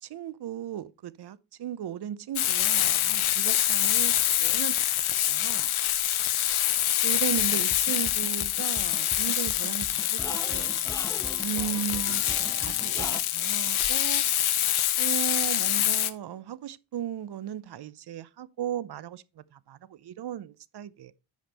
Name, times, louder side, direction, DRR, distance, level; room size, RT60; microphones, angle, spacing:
voice 1, 0.0-4.1 4.4-4.8 5.3-5.7 7.0-10.7 11.4-14.3 15.0-21.1, right 10 dB, 55° right, 0.6 m, -36 dB
Frying (food), 2.4-16.1, left 12 dB, 90° left, 0.8 m, -26 dB
sound 1, 7.4-13.2, left 1 dB, 5° left, 0.4 m, -41 dB
9.1 x 5.3 x 4.0 m
wide cardioid pair, 120°, 48 cm